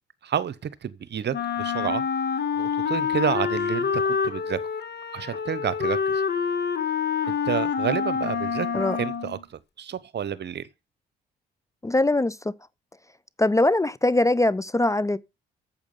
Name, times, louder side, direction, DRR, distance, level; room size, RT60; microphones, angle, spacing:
voice 1, 0.2-0.5 0.8-2.0 2.6-4.6 5.1-6.2 7.3-9.4 9.8-10.6, right 9 dB, 55° right, 0.9 m, -29 dB
Wind instrument woodwind instrument, 1.3-9.4, left 6 dB, 50° left, 1.6 m, -27 dB
voice 2, 11.8-12.5 13.4-15.2, left 2 dB, 15° left, 0.5 m, -22 dB
8.7 x 7.4 x 5.5 m
hypercardioid pair, 50°, 21 cm